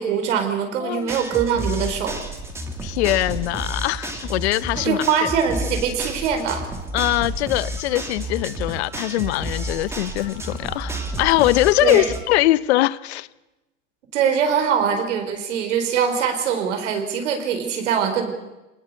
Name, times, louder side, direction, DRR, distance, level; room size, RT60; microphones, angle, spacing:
voice 1, 0.0-2.2 4.8-6.7 11.8-12.1 14.1-18.3, right 7 dB, 70° right, 4.8 m, -22 dB
voice 2, 0.8-1.1 2.8-5.3 6.9-13.3, left 17 dB, 60° left, 0.7 m, -22 dB
sound 1, 1.0-12.2, right 1 dB, 5° right, 2.1 m, -31 dB
25.0 x 19.5 x 6.9 m
supercardioid pair, 140°, 38 cm